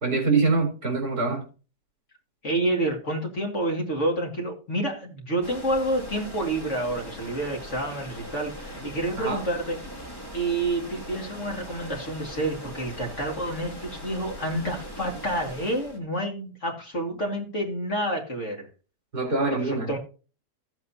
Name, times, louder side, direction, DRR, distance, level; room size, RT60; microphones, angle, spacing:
voice 1, 0.0-1.4 9.2-9.4 19.1-19.9, right 3 dB, 60° right, 4.3 m, -24 dB
voice 2, 2.4-9.8 10.3-18.7 19.5-20.0, right 1 dB, 45° left, 2.6 m, -29 dB
sound 1, 5.4-16.0, equal, 15° left, 2.4 m, -40 dB
15.0 x 8.2 x 2.8 m
omnidirectional pair, 1.7 m